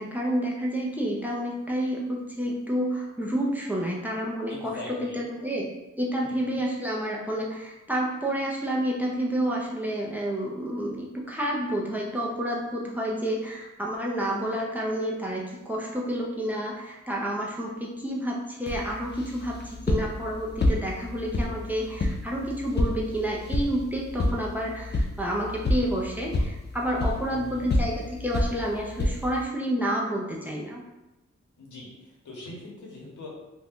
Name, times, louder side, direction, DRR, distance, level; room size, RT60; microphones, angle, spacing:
voice 1, 0.0-5.7 6.0-30.8, equal, 5° right, -3 dB, 0.6 m, -29 dB
voice 2, 4.5-5.2 6.2-6.6 27.3-27.7 31.6-33.3, left 2 dB, 85° left, -4 dB, 1.1 m, -42 dB
sound 1, 18.7-29.4, left 1 dB, 35° left, 0.5 m, -29 dB
2.6 x 2.3 x 3.6 m, 0.97 s
cardioid pair, 70°, 29 cm